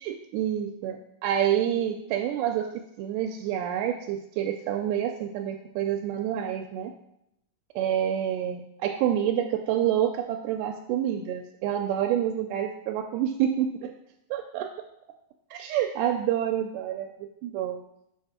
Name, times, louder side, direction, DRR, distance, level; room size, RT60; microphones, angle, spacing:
voice 1, 0.0-2.7 3.0-6.9 7.8-14.0 14.3-14.7 15.5-17.8, right 10 dB, 90° right, 3 dB, 2.1 m, -28 dB
6.1 x 4.4 x 4.8 m, 0.79 s
omnidirectional pair, 3.6 m